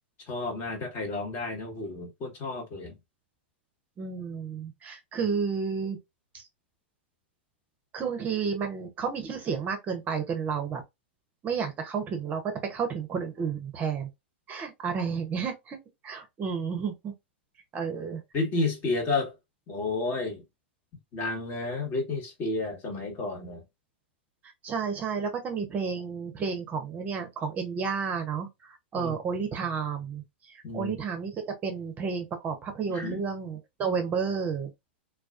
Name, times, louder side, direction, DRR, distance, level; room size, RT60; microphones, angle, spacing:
voice 1, 0.3-3.0 18.3-19.3 19.7-20.4 21.1-23.6 28.9-29.1 30.6-30.9 32.9-33.2, left 3 dB, 35° left, 1.2 m, -31 dB
voice 2, 4.0-6.0 6.3-6.4 7.9-10.8 11.4-14.1 14.5-15.8 16.0-17.1 17.7-18.2 24.6-34.7, right 6 dB, 25° right, 0.6 m, -31 dB
2.3 x 2.3 x 2.4 m
hypercardioid pair, 110°, 6 cm